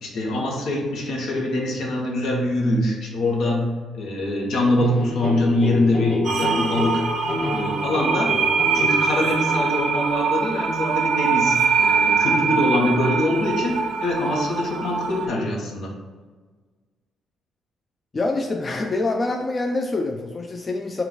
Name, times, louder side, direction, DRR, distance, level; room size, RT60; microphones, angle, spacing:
voice 1, 0.0-3.7 3.9-7.0 7.5-8.3 8.7-15.9, left 1 dB, 75° left, -2 dB, 1.1 m, -23 dB
sound 1, 4.8-9.8, left 2 dB, 50° left, 1.3 m, -29 dB
sound 2, 6.2-15.3, right 5 dB, 70° right, 0.6 m, -23 dB
voice 2, 18.1-21.0, left 2 dB, 30° left, 3 dB, 0.4 m, -25 dB
4.4 x 2.3 x 3.9 m, 1.4 s
cardioid pair, 90°, 0 cm